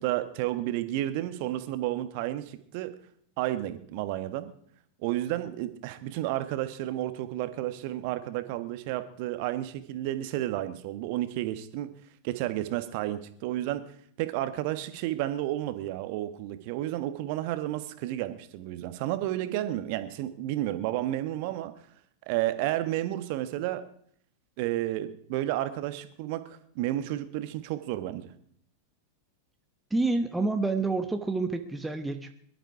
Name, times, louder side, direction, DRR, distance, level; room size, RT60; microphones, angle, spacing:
voice 1, 0.0-2.9 3.4-4.5 5.0-11.9 12.2-13.8 14.2-21.7 22.3-23.8 24.6-28.3, right 14 dB, 45° right, 11 dB, 1.3 m, -31 dB
voice 2, 29.9-32.3, right 3 dB, 5° right, 6 dB, 1.1 m, -28 dB
22.0 x 12.0 x 4.8 m, 0.65 s
figure-of-eight pair, 90°, 0 cm